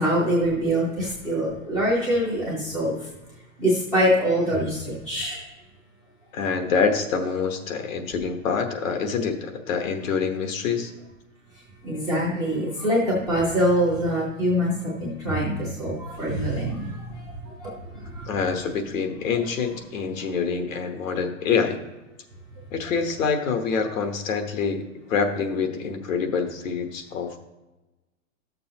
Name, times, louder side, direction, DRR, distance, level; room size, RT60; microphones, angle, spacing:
voice 1, 0.0-3.0 3.6-5.4 11.8-14.7 15.0-17.0 17.6-17.7 18.1-18.2, equal, 5° left, -7 dB, 0.3 m, -24 dB
voice 2, 6.3-10.9 18.3-21.8 22.7-27.4, left 5 dB, 75° left, 6 dB, 1.3 m, -26 dB
12.0 x 6.8 x 2.9 m, 1.1 s
hypercardioid pair, 155°, 40 cm